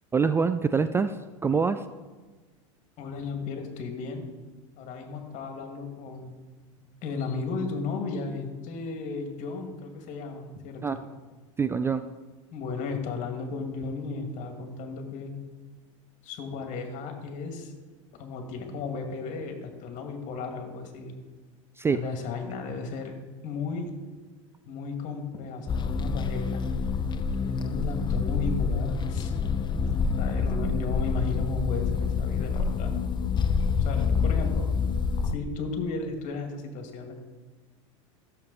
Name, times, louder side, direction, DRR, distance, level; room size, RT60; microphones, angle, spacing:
voice 1, 0.1-1.2 1.4-1.8 10.8-11.0 11.6-12.0 21.8-22.0, right 5 dB, 15° right, 11 dB, 0.3 m, -24 dB
voice 2, 3.0-4.3 4.8-6.3 6.8-11.0 12.5-15.4 16.2-17.7 18.1-21.1 21.9-23.1 23.4-23.9 24.7-26.6 27.4-29.3 30.1-32.9 33.8-34.7 35.3-37.2, left 4 dB, 50° left, 4 dB, 2.1 m, -35 dB
sound 1, 25.7-35.3, left 5 dB, 30° left, 0.6 m, -27 dB
14.5 x 7.1 x 4.1 m, 1.3 s
hypercardioid pair, 100°, 16 cm